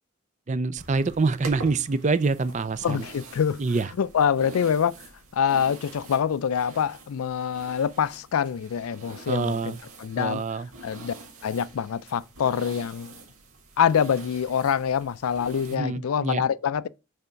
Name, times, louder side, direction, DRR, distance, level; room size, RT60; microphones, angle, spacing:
voice 1, 0.5-3.0 3.6-3.9 9.3-9.8 10.2-10.7 15.7-16.4, right 3 dB, 35° right, 0.4 m, -26 dB
sound 1, 0.8-15.8, right 3 dB, 80° right, 1.8 m, -45 dB
voice 2, 2.8-3.6 4.0-4.9 5.3-11.1 11.4-13.1 13.8-16.9, left 7 dB, 80° left, 0.4 m, -25 dB
6.7 x 3.5 x 5.6 m
head